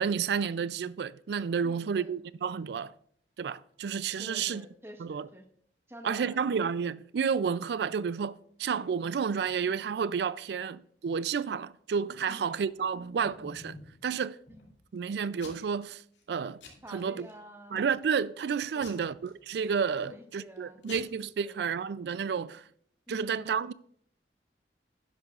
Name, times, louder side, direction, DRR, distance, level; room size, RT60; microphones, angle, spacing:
voice 1, 0.0-2.9 3.4-4.7 5.0-5.3 6.0-13.8 14.0-14.4 14.9-16.0 16.3-16.6 16.9-17.3 17.7-22.6 23.1-23.7, right 6 dB, 65° right, 0.3 m, -31 dB
voice 2, 1.6-2.1 4.2-5.4 5.9-6.4 12.3-12.5 14.5-14.6 16.8-17.9 18.7-19.1 20.0-20.8 21.4-21.5 23.1-23.5, equal, 15° right, 1.0 m, -48 dB
Packing tape duct tape / Tearing, 12.6-14.0 14.5-15.0 15.4-15.8 16.1-16.3 16.6-17.3 17.8-18.1 18.8-20.1 20.6-20.7 20.8-21.0, left 3 dB, 85° left, 2.4 m, -50 dB
11.5 x 10.0 x 2.4 m
head